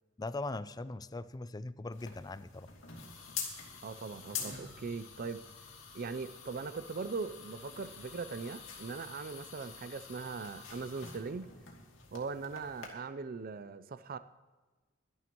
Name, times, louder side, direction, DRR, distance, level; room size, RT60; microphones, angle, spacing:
voice 1, 0.2-2.7, left 2 dB, 20° left, 16 dB, 0.4 m, -40 dB
sound 1, 1.9-12.9, left 6 dB, 75° left, 2.6 m, -46 dB
voice 2, 3.8-5.4 5.9-11.5 12.1-14.2, right 4 dB, 50° right, 12 dB, 0.5 m, -40 dB
22.5 x 11.0 x 3.0 m, 1.3 s
head